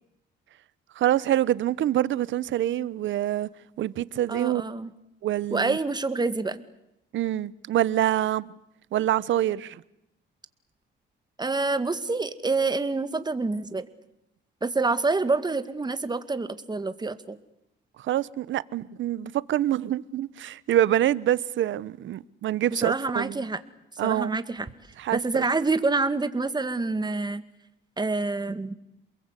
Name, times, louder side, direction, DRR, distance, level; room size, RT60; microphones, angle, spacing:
voice 1, 1.0-3.5 3.8-4.6 5.2-5.8 7.1-8.5 8.9-9.8 18.0-23.4 24.0-24.4 25.0-25.2, right 12 dB, 70° right, 0.9 m, -26 dB
voice 2, 4.3-4.9 5.5-6.6 11.4-13.9 14.6-17.4 22.7-23.6 24.0-24.7 25.1-27.4 28.0-28.7, right 3 dB, 20° right, 2.0 m, -27 dB
28.5 x 22.0 x 8.3 m
cardioid pair, 90°, 20 cm